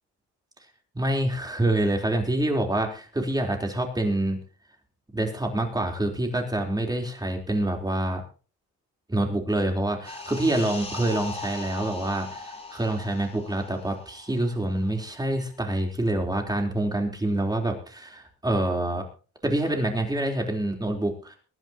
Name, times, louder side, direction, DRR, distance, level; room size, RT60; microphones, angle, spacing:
voice 1, 0.9-4.4 5.1-8.2 9.1-19.0 19.4-21.4, right 1 dB, 15° right, 2 dB, 4.0 m, -26 dB
sound 1, 10.0-15.1 15.4-15.6, left 2 dB, 20° left, 4.8 m, -39 dB
23.0 x 11.0 x 3.0 m, 0.35 s
cardioid pair, 90°, 30 cm